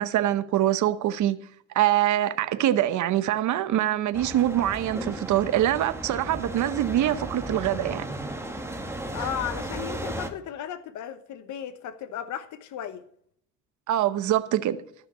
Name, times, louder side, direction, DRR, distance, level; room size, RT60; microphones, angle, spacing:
voice 1, 0.0-1.4 1.7-8.1 9.2-9.3 13.9-14.8, right 12 dB, 75° right, 0.9 m, -24 dB
sound 1, 4.1-10.3, right 1 dB, 10° right, 1.8 m, -35 dB
voice 2, 9.1-13.0, left 10 dB, 75° left, 1.0 m, -35 dB
13.5 x 5.8 x 8.4 m
cardioid pair, 90°, 30 cm